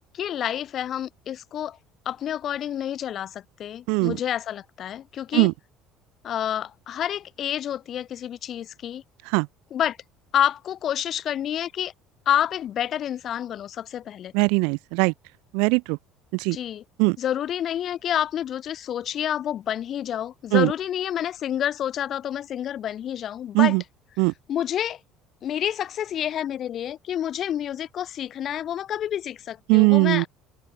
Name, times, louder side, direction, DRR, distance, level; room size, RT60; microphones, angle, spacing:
voice 1, 0.2-1.8 2.1-5.5 6.2-9.0 9.7-10.0 10.3-11.9 12.3-14.3 16.5-16.8 17.2-23.8 24.5-25.0 25.4-30.3, left 10 dB, 35° left, 4.2 m, -28 dB
voice 2, 14.3-15.1 15.5-16.0 16.3-16.6 17.0-17.2 20.5-20.7 23.5-23.8 24.2-24.3 29.7-30.3, right 32 dB, 80° right, 0.4 m, -20 dB
cardioid pair, 170°, 0 cm